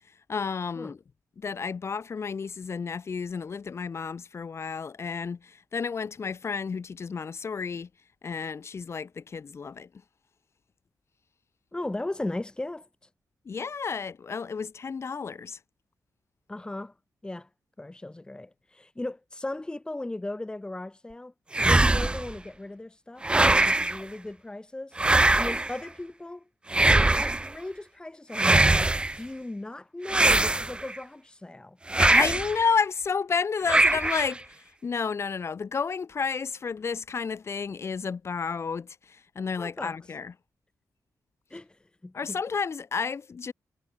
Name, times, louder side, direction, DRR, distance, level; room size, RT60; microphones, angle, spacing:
voice 1, 0.3-1.0 1.4-7.9 8.2-9.9 13.4-15.6 32.0-34.6 34.8-40.3 42.1-43.5, left 5 dB, 45° left, 8.0 m, -31 dB
voice 2, 11.7-12.9 16.5-16.9 17.2-17.5 17.8-21.3 21.6-25.0 25.4-26.4 26.8-31.8 39.6-40.0 41.5-42.4, left 2 dB, 15° left, 2.8 m, -37 dB
sound 1, 21.5-22.3 23.2-24.0 25.0-25.8 26.7-27.5 28.3-29.2 30.1-31.0 31.9-32.6 33.7-34.4, right 2 dB, 15° right, 1.3 m, -22 dB
wide cardioid pair, 140°, 6 cm